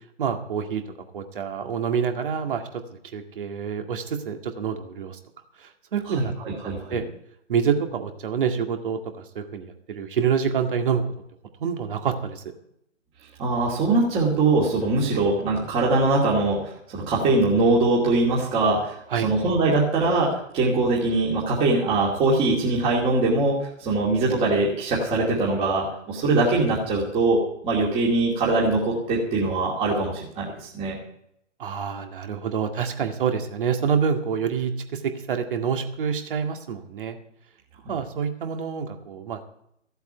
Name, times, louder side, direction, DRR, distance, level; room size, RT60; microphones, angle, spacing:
voice 1, 0.2-0.8 1.1-2.6 3.1-5.2 5.6-7.0 7.5-11.0 11.6-12.4 19.1-19.3 31.6-37.2 37.9-39.4, right 7 dB, 45° right, 5 dB, 2.1 m, -27 dB
voice 2, 6.6-7.0 13.4-18.9 19.2-31.0 37.8-37.9, right 3 dB, 15° right, -5 dB, 2.5 m, -22 dB
15.5 x 8.1 x 8.0 m, 0.74 s
figure-of-eight pair, 140°, 37 cm